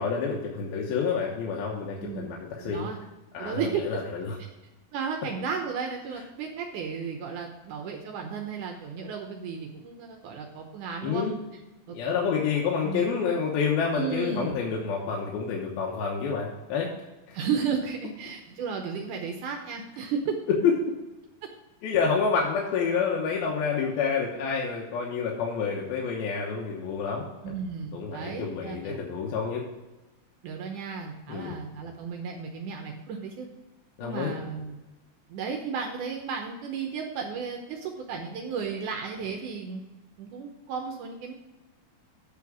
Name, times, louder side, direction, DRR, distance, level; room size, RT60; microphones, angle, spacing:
voice 1, 0.0-2.9 3.3-4.4 11.0-11.4 11.9-16.9 17.3-17.4 20.6-20.7 21.8-27.3 27.9-29.6 31.3-31.6 34.0-34.4, left 6 dB, 80° left, -2 dB, 2.9 m, -28 dB
voice 2, 2.6-3.0 3.4-4.0 4.9-11.3 11.9-12.0 12.8-13.1 13.9-14.6 17.3-20.2 27.4-29.1 30.4-33.5 34.0-34.8 35.3-39.8 40.2-41.3, right 6 dB, 75° right, 3 dB, 2.0 m, -34 dB
8.4 x 4.4 x 7.2 m, 1.0 s
omnidirectional pair, 4.4 m